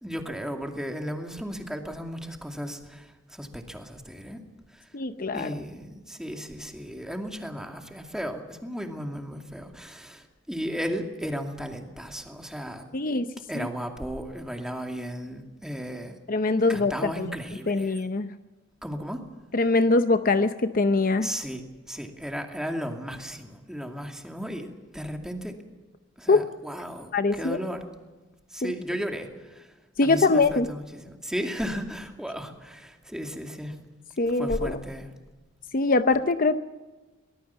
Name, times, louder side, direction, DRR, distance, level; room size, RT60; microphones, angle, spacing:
voice 1, 0.0-4.4 4.7-4.9 5.3-12.9 13.5-16.2 16.7-18.0 18.8-19.3 21.2-25.6 26.2-27.9 28.5-29.7 30.0-33.8 34.4-35.1, equal, 5° right, 3 dB, 2.4 m, -35 dB
voice 2, 4.9-5.5 12.9-13.7 16.3-17.3 17.7-18.3 19.5-21.3 26.3-26.4 27.1-27.6 28.6-28.7 30.0-30.7 34.2-34.8 35.7-36.6, left 3 dB, 45° left, 10 dB, 0.7 m, -23 dB
23.5 x 19.5 x 7.0 m, 1.2 s
head